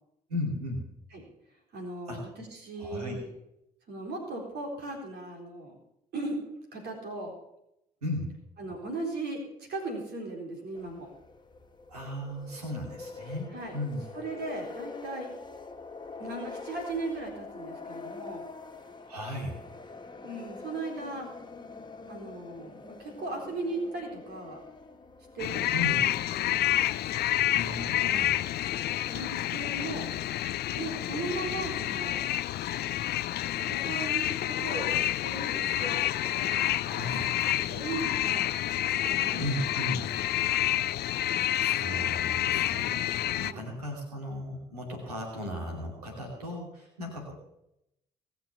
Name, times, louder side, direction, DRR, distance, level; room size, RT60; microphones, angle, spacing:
voice 1, 0.3-0.8 2.1-2.2 2.8-3.2 8.0-8.3 11.9-14.0 19.1-19.6 25.7-26.0 27.5-28.4 36.8-37.3 39.4-40.1 41.6-47.3, left 1 dB, 90° right, 0 dB, 2.8 m, -36 dB
voice 2, 1.7-3.3 3.9-5.8 6.1-6.4 6.7-7.4 8.6-11.1 13.5-13.8 14.1-15.3 16.2-18.4 20.2-21.3 22.1-24.6 25.3-26.7 28.1-28.3 29.1-30.1 30.7-32.2 33.5-36.6 37.7-38.6 38.9-39.4 40.0-40.2 43.4-43.7, right 2 dB, 60° right, 1 dB, 4.3 m, -37 dB
sound 1, 10.7-29.8, left 4 dB, 25° left, 1.8 m, -46 dB
sound 2, 25.4-43.5, left 13 dB, 60° left, 0.6 m, -29 dB
19.5 x 6.8 x 7.1 m, 0.82 s
hypercardioid pair, 45°, 19 cm